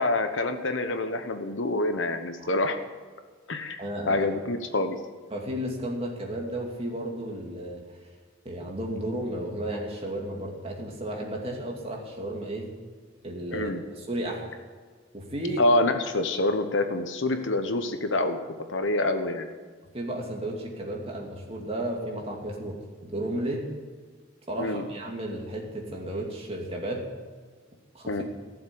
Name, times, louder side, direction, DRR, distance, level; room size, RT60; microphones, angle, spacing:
voice 1, 0.0-2.8 3.5-3.8 4.1-5.0 13.5-13.8 15.6-18.4 18.7-19.5 24.6-24.8 28.1-28.2, left 2 dB, 70° left, 7 dB, 1.1 m, -26 dB
voice 2, 3.8-4.3 5.3-7.8 8.4-12.7 13.2-14.4 15.1-15.6 19.9-23.7 24.5-27.1 27.9-28.1, right 1 dB, 30° right, -1 dB, 2.5 m, -33 dB
16.0 x 7.3 x 9.9 m, 1.6 s
head